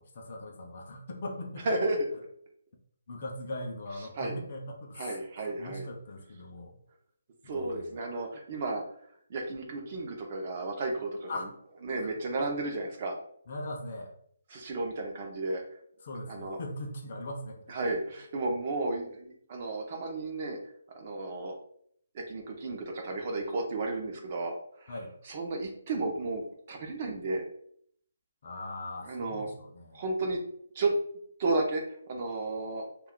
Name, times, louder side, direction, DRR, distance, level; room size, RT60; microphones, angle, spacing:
voice 1, 0.0-1.7 3.1-6.8 7.4-8.0 11.3-11.5 12.0-12.1 12.4-12.5 13.5-14.2 16.0-17.9 24.9-25.1 28.4-30.0, left 1 dB, 35° left, 1 dB, 0.4 m, -40 dB
voice 2, 1.7-2.0 4.2-4.4 5.0-5.9 7.5-8.8 9.3-11.3 11.8-13.2 14.5-15.6 16.3-16.6 17.7-20.6 20.9-21.5 22.1-24.9 25.3-26.4 26.7-27.5 29.0-29.5 29.9-30.4 30.7-30.9 31.4-32.8, right 2 dB, 30° right, 2 dB, 0.4 m, -33 dB
2.2 x 2.2 x 3.6 m, 0.66 s
hypercardioid pair, 175°, 0 cm